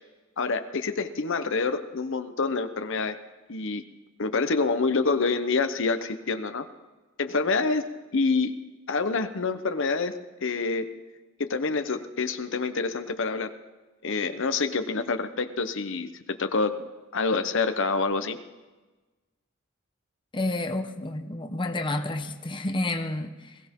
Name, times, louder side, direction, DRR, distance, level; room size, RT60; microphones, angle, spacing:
voice 1, 0.4-3.2 3.5-3.8 4.2-6.6 7.2-7.8 8.1-8.5 8.9-10.9 11.4-13.5 14.0-16.8 17.1-18.4, left 4 dB, 65° left, 0.9 m, -27 dB
voice 2, 20.3-23.6, left 2 dB, 25° left, 0.9 m, -30 dB
21.0 x 16.0 x 3.7 m
head